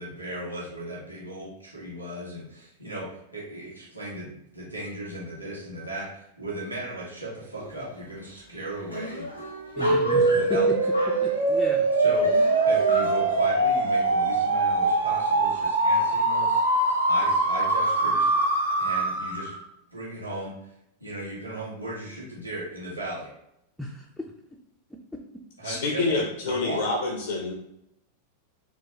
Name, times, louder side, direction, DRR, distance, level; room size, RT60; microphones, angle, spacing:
voice 1, 0.0-9.3 9.7-10.7 12.0-16.6 17.1-18.3 18.8-19.5 19.9-20.7 21.0-23.3 25.6-26.8, right 1 dB, 90° right, -7 dB, 1.3 m, -37 dB
sound 1, 7.5-7.9 8.3-8.4 8.6-11.7 12.2-13.3, right 1 dB, 90° left, 0.8 m, -35 dB
voice 2, 9.8-10.6 11.2-11.9 23.8-24.3, left 1 dB, ahead, -1 dB, 0.4 m, -35 dB
sound 2, 9.8-19.6, right 2 dB, 70° right, 0.6 m, -23 dB
voice 3, 25.6-27.5, left 3 dB, 60° left, 1 dB, 0.5 m, -27 dB
3.8 x 2.2 x 2.7 m, 0.80 s
figure-of-eight pair, 90°, 0 cm